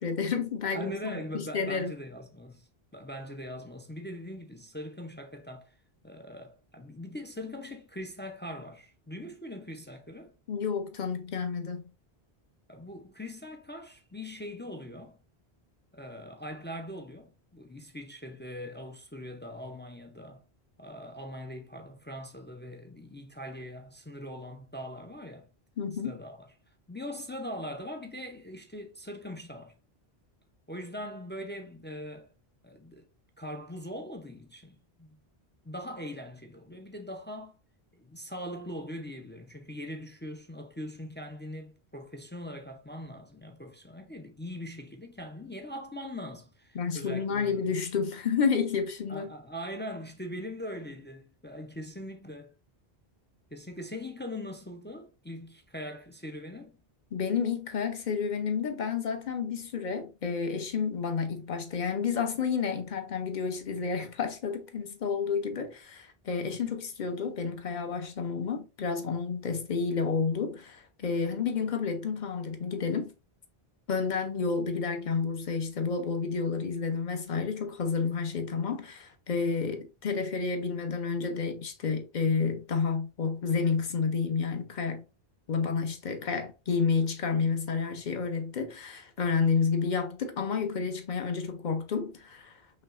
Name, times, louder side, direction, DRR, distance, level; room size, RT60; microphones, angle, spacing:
voice 1, 0.0-1.9 10.5-11.8 25.8-26.1 46.7-49.3 57.1-73.1 73.9-85.0 85.5-92.5, left 5 dB, 50° left, 0.8 m, -30 dB
voice 2, 0.7-5.7 6.0-10.3 12.7-15.2 15.9-20.4 20.8-25.5 26.0-26.5 26.9-29.7 30.7-32.3 32.6-33.1 33.4-35.2 35.6-37.6 37.9-47.6 49.1-52.5 53.5-56.8, equal, 20° left, 0.3 m, -41 dB
5.5 x 3.1 x 2.4 m
omnidirectional pair, 1.1 m